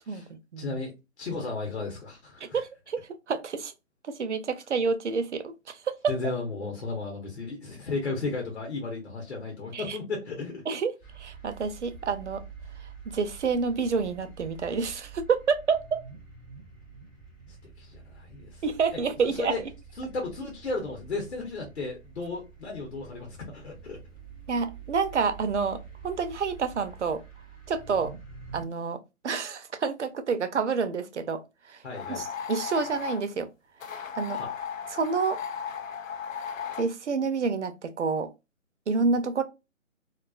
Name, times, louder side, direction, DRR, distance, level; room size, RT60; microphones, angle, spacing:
voice 1, 0.6-2.6 6.1-10.6 17.6-18.6 19.2-19.6 20.0-24.0 31.8-32.2 34.3-34.5, left 3 dB, 55° left, 0.9 m, -34 dB
voice 2, 2.5-3.0 3.3-3.7 4.0-6.0 9.7-10.0 10.7-12.4 13.1-16.0 18.6-19.5 24.5-27.2 27.7-28.1 28.5-29.0 29.2-31.4 31.7-31.8 32.2-33.5 33.8-34.4 34.9-35.4 36.8-38.3 38.9-39.4, right 5 dB, 60° right, 0.5 m, -28 dB
sound 1, 11.0-28.6, right 6 dB, 10° left, 0.8 m, -47 dB
sound 2, 31.9-33.2 33.8-36.9, left 7 dB, 75° left, 0.5 m, -36 dB
2.4 x 2.3 x 2.3 m
figure-of-eight pair, 160°, 40 cm